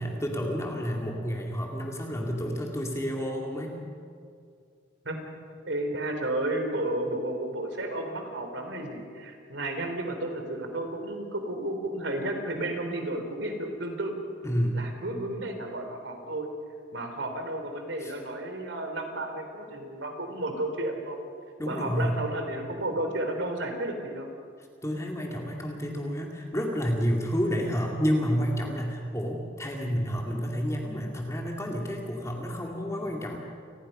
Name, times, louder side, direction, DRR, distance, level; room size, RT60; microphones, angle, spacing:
voice 1, 0.0-3.8 14.4-14.8 18.0-18.1 21.6-22.2 24.8-33.4, equal, 15° left, 0 dB, 2.3 m, -30 dB
voice 2, 5.7-14.3 14.7-16.5 16.9-21.2 21.6-24.3, right 1 dB, 65° right, 4 dB, 3.5 m, -32 dB
28.5 x 20.5 x 5.5 m, 2.3 s
head